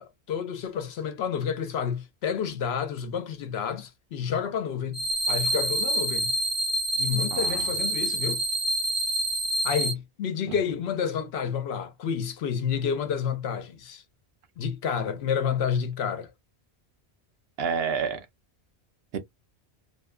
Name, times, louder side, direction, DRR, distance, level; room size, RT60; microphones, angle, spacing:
voice 1, 0.0-6.3 7.0-8.4 9.6-14.0 14.6-16.3, left 7 dB, 75° left, 0.9 m, -30 dB
sound 1, 4.9-9.9, right 1 dB, 40° right, 0.7 m, -27 dB
voice 2, 7.3-7.7 10.5-10.6 17.6-18.3 19.1-19.2, right 6 dB, 75° right, 0.8 m, -29 dB
2.7 x 2.2 x 2.2 m
omnidirectional pair, 1.1 m